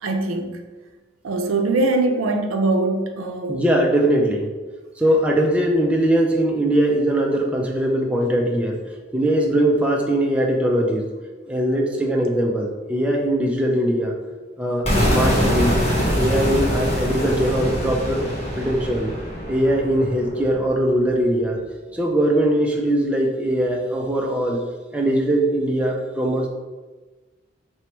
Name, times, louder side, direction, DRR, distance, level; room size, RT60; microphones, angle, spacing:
voice 1, 0.0-0.5 1.2-3.6, right 2 dB, 90° right, 5 dB, 0.5 m, -22 dB
voice 2, 3.5-4.5 5.0-8.8 9.1-11.1 11.5-14.1 14.6-15.8 16.2-19.1 19.5-21.6 21.9-24.6 24.9-26.5, right 1 dB, 5° right, -1 dB, 0.4 m, -21 dB
sound 1, 14.8-20.7, equal, 30° left, 1.1 m, -23 dB
3.1 x 3.0 x 4.4 m, 1.3 s
head